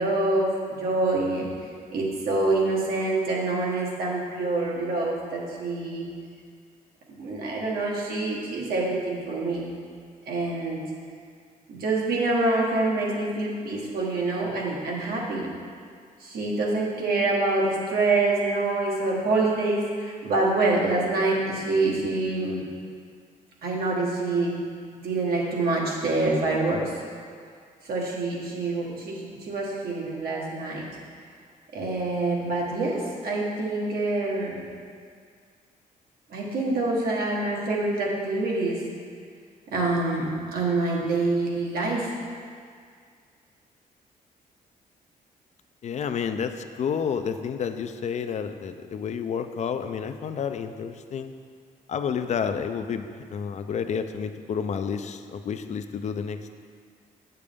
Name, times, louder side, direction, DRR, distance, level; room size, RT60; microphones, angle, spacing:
voice 1, 0.0-1.5 1.9-6.0 7.1-9.7 10.3-10.8 11.7-15.5 16.2-22.6 23.6-24.6 25.0-26.9 27.8-30.8 31.7-34.6 36.3-38.8 39.7-42.1, right 2 dB, 85° right, -3 dB, 1.5 m, -26 dB
voice 2, 45.8-51.3 51.9-56.5, left 7 dB, 50° left, 8 dB, 0.4 m, -30 dB
8.5 x 6.7 x 3.5 m, 2.1 s
cardioid pair, 135°, 15 cm